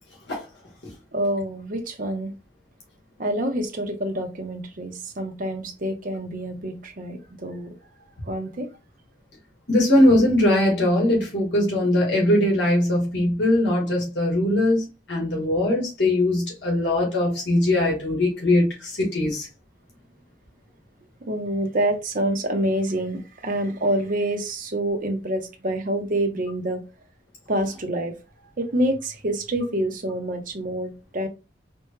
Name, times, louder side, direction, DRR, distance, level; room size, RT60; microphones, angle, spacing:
voice 1, 1.1-2.3 3.2-7.7 8.3-8.7 21.2-26.8 27.5-28.1 28.6-31.3, right 1 dB, 45° right, 0.8 m, -27 dB
voice 2, 9.7-19.5, left 1 dB, 70° left, 1.7 m, -21 dB
4.3 x 2.3 x 3.2 m
head